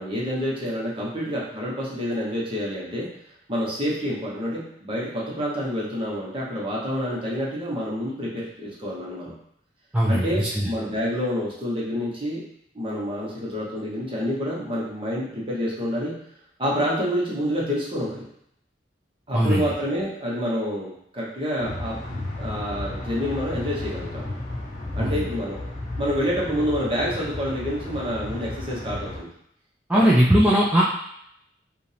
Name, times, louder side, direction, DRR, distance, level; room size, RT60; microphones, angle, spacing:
voice 1, 0.0-3.1 3.5-9.3 10.1-12.4 12.7-16.1 16.6-18.3 19.3-24.2 24.9-25.6 26.0-29.3 29.9-30.1, equal, 30° right, -5 dB, 1.1 m, -28 dB
voice 2, 9.9-10.7 19.3-19.6 25.0-25.2 29.9-30.8, equal, 5° right, -6 dB, 0.4 m, -19 dB
sound 1, 21.6-29.2, left 1 dB, 40° left, 1.0 m, -33 dB
5.1 x 2.5 x 3.4 m, 0.73 s
head